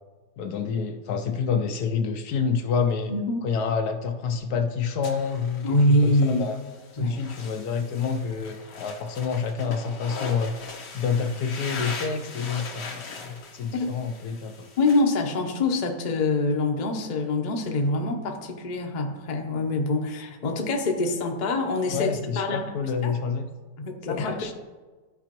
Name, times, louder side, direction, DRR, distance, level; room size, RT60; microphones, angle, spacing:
voice 1, 0.4-3.1 3.4-5.7 6.0-6.6 6.9-10.5 10.9-14.7 21.9-23.5 24.1-24.5, left 6 dB, 75° left, 6 dB, 1.0 m, -28 dB
voice 2, 3.1-3.4 5.6-6.5 7.0-7.2 13.7-13.9 14.8-22.7 23.0-23.1 23.8-24.5, left 2 dB, 40° left, 2 dB, 0.7 m, -25 dB
sound 1, 5.0-15.0, left 4 dB, 90° left, 1.8 m, -40 dB
13.5 x 4.8 x 3.0 m, 1.3 s
omnidirectional pair, 1.8 m